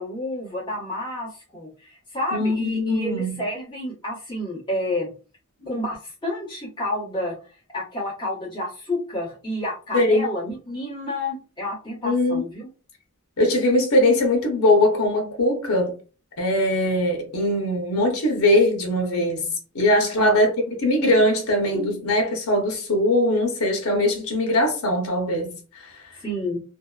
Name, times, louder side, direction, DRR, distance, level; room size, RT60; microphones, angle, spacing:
voice 1, 0.0-5.1 5.7-7.4 7.7-12.6 20.2-20.4 26.1-26.6, left 1 dB, 20° left, 1.1 m, -30 dB
voice 2, 2.3-3.4 9.9-10.3 12.0-12.4 13.4-16.0 16.4-26.0, left 1 dB, 80° left, 0.7 m, -21 dB
2.6 x 2.1 x 2.3 m
head